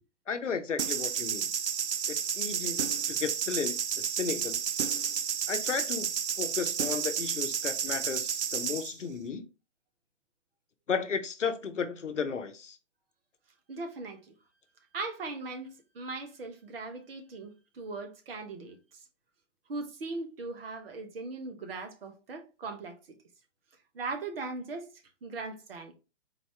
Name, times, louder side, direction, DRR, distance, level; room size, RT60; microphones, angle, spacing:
voice 1, 0.3-1.5 2.1-4.7 5.5-6.1 6.4-9.5 10.9-12.8, left 6 dB, 80° left, 0.7 m, -34 dB
sound 1, 0.8-8.9, right 8 dB, 70° right, 0.5 m, -31 dB
voice 2, 13.7-14.2 14.9-15.7 15.9-18.8 19.7-22.9 23.9-24.9 25.2-25.9, right 3 dB, 50° right, 1.1 m, -39 dB
4.0 x 2.7 x 3.2 m
figure-of-eight pair, 125°, 36 cm